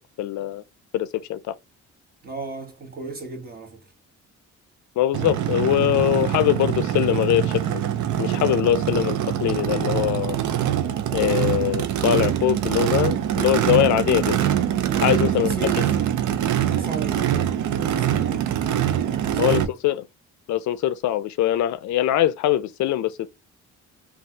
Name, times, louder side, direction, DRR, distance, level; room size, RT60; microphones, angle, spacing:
voice 1, 0.2-0.6 0.9-1.5 5.0-7.8 8.2-10.4 11.1-14.4 15.0-15.5 19.4-20.1 20.5-23.3, left 12 dB, 70° left, 0.5 m, -22 dB
voice 2, 2.2-3.8 14.8-16.1 16.7-19.5, right 3 dB, 30° right, 1.3 m, -36 dB
Race car auto racing / Idling / Accelerating revving vroom, 5.1-19.6, right 10 dB, 75° right, 0.6 m, -24 dB
3.2 x 2.4 x 2.7 m
cardioid pair, 90°, 30 cm